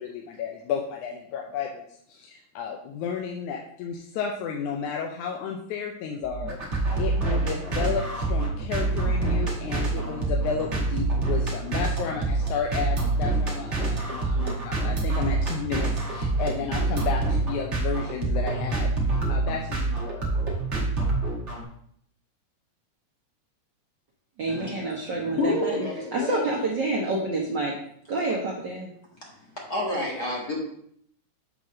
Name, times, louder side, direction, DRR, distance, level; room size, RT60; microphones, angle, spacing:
voice 1, 0.0-18.9 19.3-20.3, left 6 dB, 80° left, 1 dB, 2.1 m, -32 dB
sound 1, 6.2-21.6, right 3 dB, 30° right, 1.3 m, -26 dB
voice 2, 24.4-25.8 26.1-27.7 28.1-28.9, right 2 dB, 80° right, -2 dB, 0.9 m, -28 dB
voice 3, 25.2-26.6 29.7-30.6, left 2 dB, 35° left, -3 dB, 1.6 m, -28 dB
7.0 x 4.0 x 6.2 m, 0.67 s
omnidirectional pair, 3.5 m